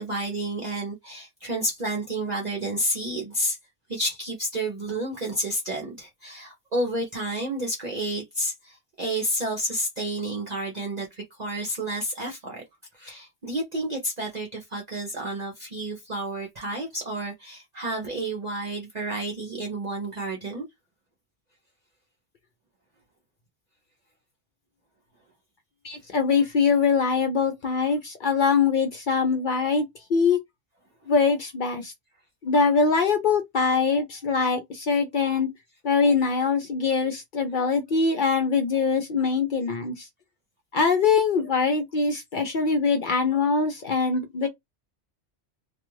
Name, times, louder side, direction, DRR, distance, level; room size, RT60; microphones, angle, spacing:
voice 1, 0.0-3.6 3.9-12.6 12.9-20.7, right 1 dB, 45° right, 0.7 m, -30 dB
voice 2, 25.8-29.8 30.1-30.4 31.1-31.9 32.4-35.5 35.8-40.1 40.7-44.5, left 5 dB, 55° left, 0.6 m, -23 dB
2.3 x 2.3 x 3.0 m
omnidirectional pair, 1.2 m